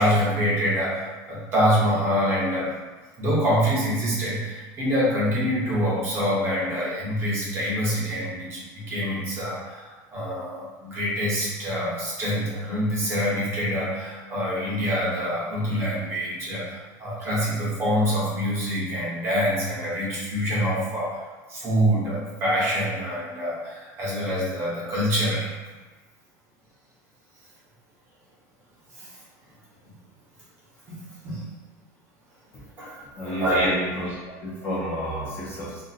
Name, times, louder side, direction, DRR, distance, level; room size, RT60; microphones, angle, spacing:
voice 1, 0.0-2.7 3.2-21.1 21.5-25.5 28.9-29.1 30.9-31.4 32.8-33.0 33.2-33.7, equal, 30° right, -7 dB, 0.9 m, -25 dB
voice 2, 33.2-34.1 34.4-35.8, equal, 25° left, -7 dB, 0.6 m, -31 dB
2.5 x 2.1 x 4.0 m, 1.3 s
cardioid pair, 175°, 9 cm